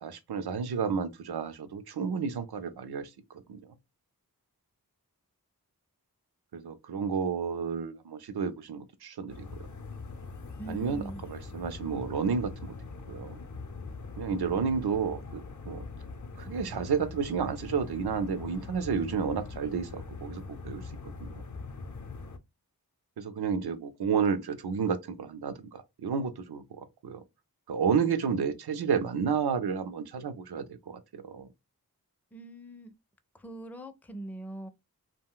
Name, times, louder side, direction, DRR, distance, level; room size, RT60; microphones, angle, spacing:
voice 1, 0.0-3.6 6.5-9.7 10.7-12.7 13.1-13.4 14.2-15.9 16.4-21.4 23.2-27.2 27.7-31.5, right 6 dB, 80° right, 0.5 m, -31 dB
sound 1, 9.3-22.4, left 3 dB, 50° left, 0.6 m, -42 dB
voice 2, 10.6-11.2 32.3-32.9 33.3-34.7, right 1 dB, 5° left, 0.4 m, -42 dB
2.3 x 2.1 x 3.6 m
wide cardioid pair, 45°, 38 cm